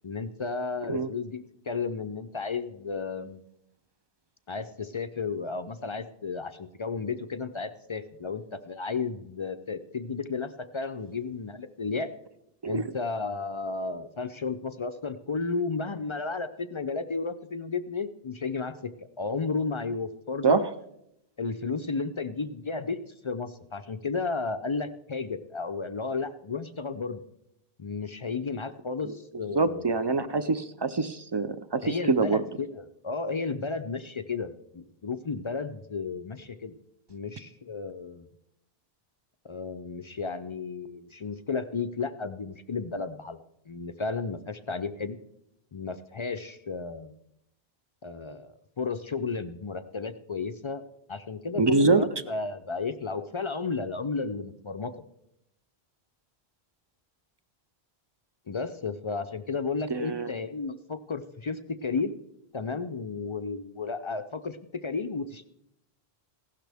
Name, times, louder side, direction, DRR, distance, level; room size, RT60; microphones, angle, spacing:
voice 1, 0.0-3.4 4.5-12.1 12.7-18.9 19.2-20.6 21.4-27.2 27.8-29.9 31.8-36.7 37.1-38.3 39.4-43.4 43.7-45.2 45.7-47.2 48.0-50.8 51.1-54.9 58.5-62.2 62.5-65.5, left 4 dB, 45° left, 10 dB, 0.4 m, -33 dB
voice 2, 29.5-32.4 51.6-52.1 59.9-60.3, right 4 dB, 45° right, 13 dB, 0.3 m, -25 dB
16.0 x 12.5 x 3.4 m, 0.80 s
omnidirectional pair, 1.1 m